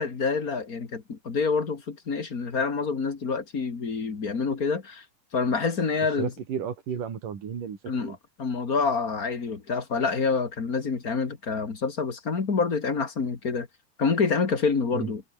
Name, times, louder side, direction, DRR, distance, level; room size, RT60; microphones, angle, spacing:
voice 1, 0.0-5.0 5.3-6.3 7.9-13.7 14.0-15.2, left 5 dB, 30° left, 2.2 m, -27 dB
voice 2, 6.2-8.2 14.9-15.1, right 7 dB, 75° right, 4.7 m, -33 dB
omnidirectional pair, 3.8 m